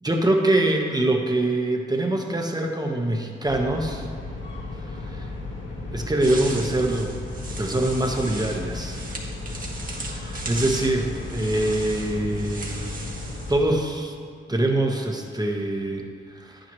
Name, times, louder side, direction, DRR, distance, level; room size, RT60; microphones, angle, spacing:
voice 1, 0.0-4.0 5.1-5.3 5.9-7.2 7.6-9.0 10.1-12.9 13.5-14.1 14.5-16.6, right 1 dB, 20° right, 2 dB, 1.3 m, -24 dB
sound 1, 3.5-13.7, left 2 dB, 65° left, 2.5 m, -34 dB
sound 2, 6.2-13.5, right 2 dB, 45° right, 1.8 m, -38 dB
10.0 x 9.0 x 3.2 m, 2.1 s
cardioid pair, 55°, 20 cm